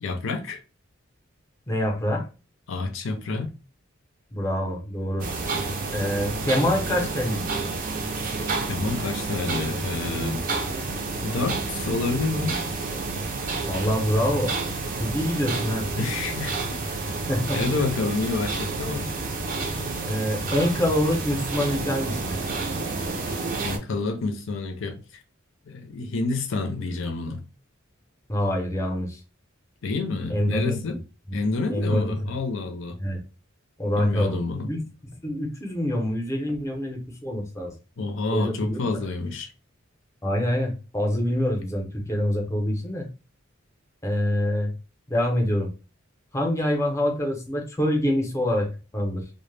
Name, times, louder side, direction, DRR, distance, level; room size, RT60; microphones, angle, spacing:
voice 1, 0.0-0.6 2.7-3.5 8.7-10.4 11.2-12.6 16.0-16.6 17.1-17.2 17.5-19.1 23.6-25.0 25.7-27.4 29.8-31.0 31.3-33.0 34.0-34.7 38.0-39.5, left 3 dB, 65° left, 0.5 m, -28 dB
voice 2, 1.7-2.3 4.3-5.3 5.9-7.5 13.7-14.5 15.0-15.9 17.3-17.9 20.0-22.4 28.3-29.2 30.3-31.0 31.3-31.4 31.7-32.3 33.0-33.2 33.8-34.9 35.2-37.7 38.3-38.8 40.2-43.1 44.0-44.7 45.1-45.7 46.3-49.2, left 1 dB, 15° left, 0.6 m, -25 dB
sound 1, 5.2-23.8, right 3 dB, 45° right, 0.4 m, -30 dB
2.1 x 2.0 x 3.1 m
head